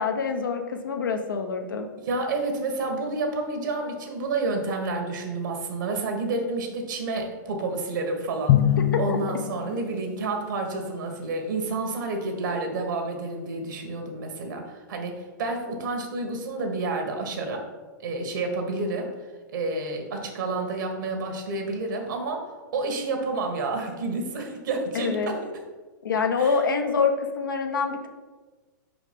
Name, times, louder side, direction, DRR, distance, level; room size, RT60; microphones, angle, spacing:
voice 1, 0.0-1.8 9.1-9.2 9.7-9.8 24.9-25.3 26.0-28.1, left 5 dB, 85° left, 5 dB, 1.0 m, -26 dB
voice 2, 2.0-8.6 9.0-17.7 18.0-19.1 19.5-22.5 22.7-25.4 26.4-26.6, right 3 dB, 75° right, 3 dB, 1.7 m, -29 dB
Drum, 8.5-10.2, left 11 dB, 45° left, 0.4 m, -23 dB
5.1 x 4.9 x 5.2 m, 1.3 s
hypercardioid pair, 120°, 11 cm